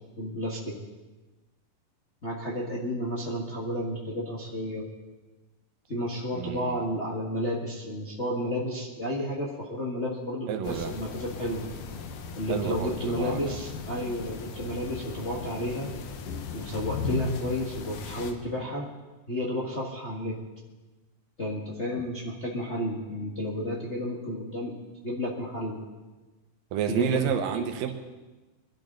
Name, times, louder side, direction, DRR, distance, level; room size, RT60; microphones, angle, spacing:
voice 1, 0.2-0.8 2.2-4.8 5.9-11.7 12.4-15.9 16.5-18.9 19.3-20.4 21.4-24.7 25.0-25.8 26.9-27.2 27.5-27.9, equal, 30° left, -4 dB, 1.3 m, -32 dB
voice 2, 6.3-6.8 10.5-10.9 12.5-13.6 22.0-22.1 26.7-27.9, right 9 dB, 85° right, 6 dB, 2.8 m, -30 dB
sound 1, 10.6-18.3, left 3 dB, 90° left, 2.9 m, -36 dB
23.0 x 12.0 x 3.9 m, 1.2 s
omnidirectional pair, 3.9 m